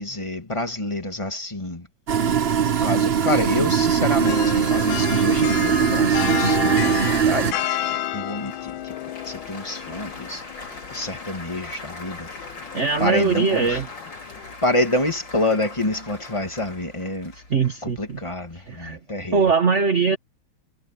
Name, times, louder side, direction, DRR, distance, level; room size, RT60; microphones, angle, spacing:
voice 1, 0.0-1.9 2.7-7.7 8.1-8.9 9.2-12.3 13.0-13.8 14.3-17.3 17.8-19.4, left 1 dB, 15° left, 2.4 m, -27 dB
sound 1, 2.1-7.5, right 7 dB, 55° right, 0.7 m, -20 dB
sound 2, 4.2-14.6, left 13 dB, 75° left, 1.4 m, -32 dB
Applause, 8.3-18.9, left 3 dB, 55° left, 5.5 m, -41 dB
voice 2, 12.7-13.9 17.5-18.2 18.5-19.0 19.3-20.2, right 5 dB, 35° right, 1.6 m, -21 dB
omnidirectional pair, 2.4 m